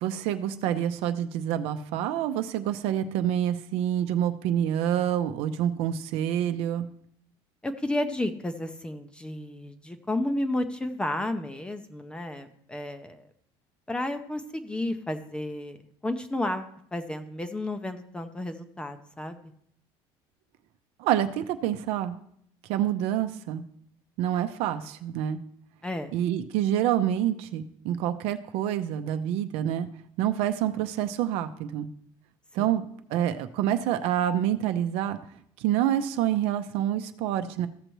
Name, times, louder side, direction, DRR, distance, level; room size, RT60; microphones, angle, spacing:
voice 1, 0.0-6.9 21.0-22.2 22.7-23.6 24.2-25.4 26.1-29.9 30.2-31.9 32.5-32.8 33.1-35.2 35.6-37.7, right 11 dB, 70° right, 8 dB, 0.7 m, -27 dB
voice 2, 7.6-13.2 13.9-15.8 16.0-19.4 25.8-26.1 32.6-32.7, left 1 dB, 10° left, 8 dB, 0.6 m, -32 dB
14.5 x 6.6 x 3.1 m, 0.67 s
cardioid pair, 150°, 11 cm